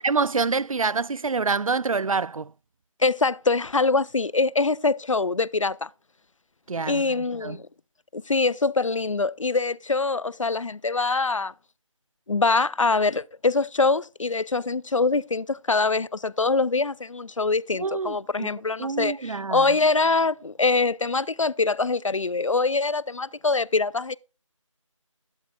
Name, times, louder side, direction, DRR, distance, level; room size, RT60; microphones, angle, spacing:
voice 1, 0.0-2.5 6.7-7.6 17.7-18.5 18.8-19.8, right 4 dB, 85° right, 0.4 m, -27 dB
voice 2, 3.0-5.9 6.9-7.7 8.1-11.5 12.3-24.2, left 3 dB, 70° left, 0.5 m, -24 dB
15.5 x 11.5 x 2.3 m
figure-of-eight pair, 170°, 17 cm